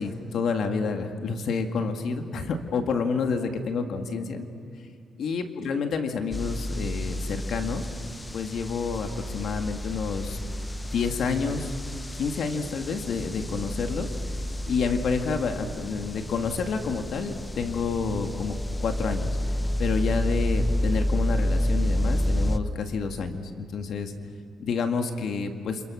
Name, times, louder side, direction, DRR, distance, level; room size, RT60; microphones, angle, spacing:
voice 1, 0.0-4.5 5.2-7.9 8.3-10.4 10.9-11.7 12.1-14.1 14.7-18.5 18.8-19.4 19.8-24.1 24.6-25.8, left 5 dB, 65° left, 6 dB, 2.1 m, -29 dB
sound 1, 6.3-22.6, left 1 dB, 15° left, 0.9 m, -30 dB
30.0 x 27.0 x 6.4 m, 2.2 s
cardioid pair, 90°, 0 cm